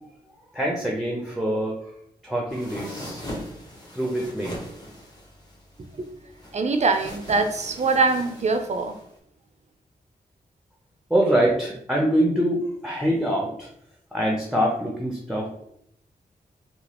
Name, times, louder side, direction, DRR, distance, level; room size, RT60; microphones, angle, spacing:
voice 1, 0.5-1.8 2.2-3.2 3.9-4.6 11.1-13.7 14.1-15.5, right 1 dB, ahead, -2 dB, 0.7 m, -24 dB
sound 1, 2.5-9.1, left 1 dB, 25° left, 1.2 m, -40 dB
voice 2, 6.5-8.9, right 3 dB, 40° right, 7 dB, 0.5 m, -23 dB
3.0 x 2.3 x 2.9 m, 0.70 s
cardioid pair, 45°, 17 cm